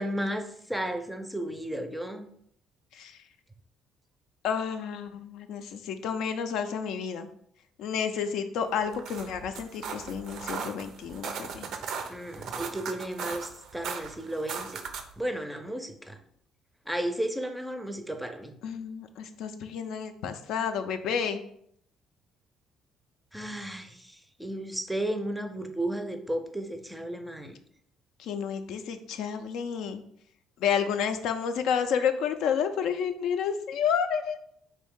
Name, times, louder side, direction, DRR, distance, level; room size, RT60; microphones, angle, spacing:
voice 1, 0.0-2.3 12.1-14.8 15.2-16.2 16.9-18.5 23.3-27.6, right 1 dB, 5° right, 6 dB, 0.5 m, -33 dB
voice 2, 4.4-7.3 7.8-11.7 18.6-21.4 28.2-30.0 30.6-34.4, left 7 dB, 80° left, 8 dB, 0.4 m, -30 dB
sound 1, 8.8-15.2, right 6 dB, 70° right, 0.4 m, -38 dB
4.0 x 2.6 x 3.6 m, 0.68 s
cardioid pair, 105°, 0 cm